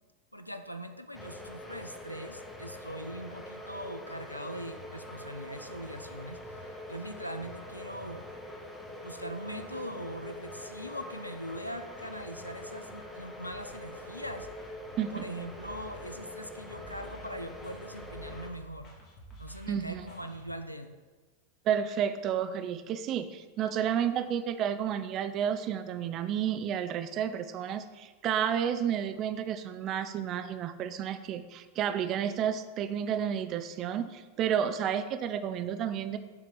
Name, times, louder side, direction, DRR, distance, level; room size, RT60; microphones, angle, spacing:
voice 1, 0.3-8.3 9.0-18.9 19.4-21.0, equal, 90° left, 8 dB, 0.3 m, -41 dB
sound 1, 1.1-18.5, left 1 dB, 5° left, 0.8 m, -44 dB
sound 2, 13.5-20.5, right 2 dB, 35° left, 1.3 m, -52 dB
voice 2, 19.7-20.0 21.7-36.2, right 9 dB, 35° right, 10 dB, 0.4 m, -31 dB
7.0 x 2.9 x 4.9 m, 1.3 s
figure-of-eight pair, 90°, 0 cm